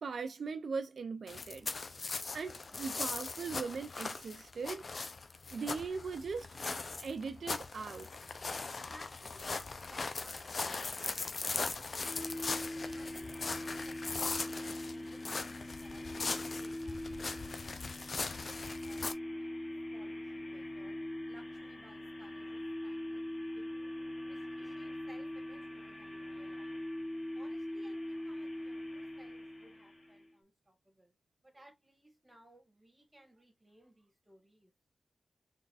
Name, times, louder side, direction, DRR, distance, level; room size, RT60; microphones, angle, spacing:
voice 1, 0.0-2.0 2.3-4.9 5.5-6.6 7.0-8.1, right 5 dB, 85° right, 0.4 m, -40 dB
sound 1, 1.3-19.1, left 3 dB, 65° left, 0.6 m, -40 dB
voice 2, 8.7-12.3 12.8-19.6 19.9-21.0 21.3-23.8 24.3-26.8 27.3-31.1 31.4-34.7, right 1 dB, 30° right, 1.7 m, -61 dB
sound 2, 12.0-30.3, left 1 dB, 45° left, 1.3 m, -42 dB
4.0 x 3.6 x 2.4 m
cardioid pair, 50°, 0 cm